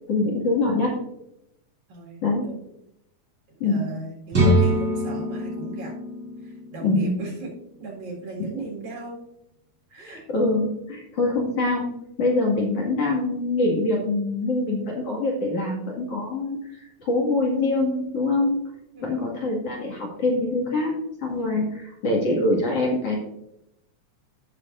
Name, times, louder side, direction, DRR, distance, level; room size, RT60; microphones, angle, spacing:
voice 1, 0.1-0.9 2.2-2.4 3.6-3.9 6.8-7.2 10.0-11.9 12.2-18.6 19.0-21.0 21.2-23.2, left 2 dB, 55° left, -3 dB, 3.0 m, -24 dB
voice 2, 1.9-2.6 3.6-5.9 6.4-7.5 7.8-9.2 9.9-10.2 18.9-19.4, right 3 dB, 65° right, -4 dB, 3.5 m, -37 dB
sound 1, 4.3-8.1, right 1 dB, 25° right, 2.2 m, -24 dB
14.5 x 6.5 x 2.6 m, 0.83 s
omnidirectional pair, 3.5 m